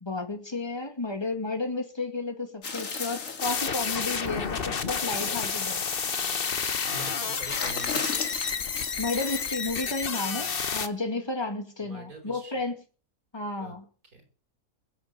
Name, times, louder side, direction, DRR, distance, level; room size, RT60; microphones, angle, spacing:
voice 1, 0.0-5.8 9.0-12.8 13.3-13.9, left 3 dB, 20° left, 2.3 m, -32 dB
sound 1, 2.6-6.7 7.3-9.5, left 5 dB, 65° left, 2.1 m, -36 dB
sound 2, 3.4-10.9, left 6 dB, 45° left, 1.2 m, -30 dB
voice 2, 6.9-8.2 11.8-12.5 13.6-13.7 14.1-14.3, right 2 dB, 90° right, 5.0 m, -44 dB
21.5 x 8.2 x 6.6 m
omnidirectional pair, 1.5 m